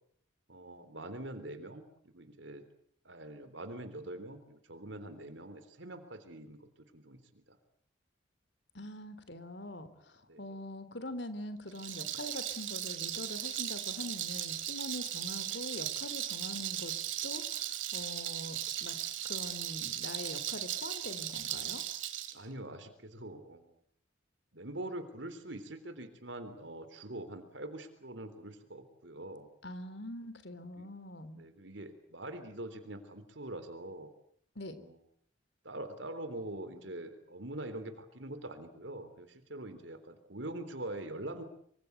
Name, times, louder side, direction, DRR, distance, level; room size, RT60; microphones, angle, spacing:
voice 1, 0.5-2.6 3.1-7.6 10.3-10.5 22.3-23.7 24.5-29.5 30.8-30.9 31.4-34.1 34.8-35.0 35.6-41.4, right 1 dB, 70° right, 9 dB, 3.6 m, -44 dB
voice 2, 8.7-16.9 17.2-19.0 19.2-21.8 29.6-31.4 34.6-34.8, left 1 dB, 60° left, 12 dB, 3.7 m, -43 dB
Rattle, 11.7-22.3, right 12 dB, 85° right, 4.2 m, -37 dB
26.0 x 25.0 x 8.2 m, 0.64 s
head